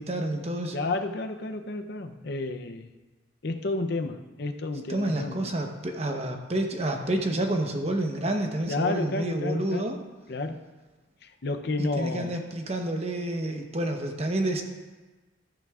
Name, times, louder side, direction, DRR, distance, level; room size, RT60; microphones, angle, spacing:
voice 1, 0.0-0.8 4.9-10.0 11.8-14.6, right 1 dB, 30° right, 3 dB, 0.9 m, -29 dB
voice 2, 0.7-2.9 3.4-5.5 8.7-9.9 10.3-10.6 11.2-12.4, left 2 dB, 55° left, 6 dB, 0.6 m, -31 dB
13.5 x 9.2 x 2.4 m, 1.2 s
head